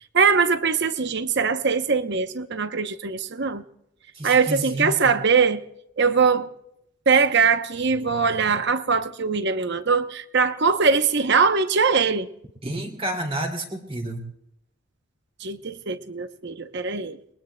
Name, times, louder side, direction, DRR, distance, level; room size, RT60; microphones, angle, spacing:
voice 1, 0.1-3.6 4.2-5.6 6.0-6.5 7.1-12.3 15.4-17.2, right 5 dB, 50° right, 0.8 m, -21 dB
voice 2, 4.1-5.1 12.6-14.2, right 1 dB, 25° right, 2.5 m, -30 dB
30.0 x 22.0 x 2.2 m
head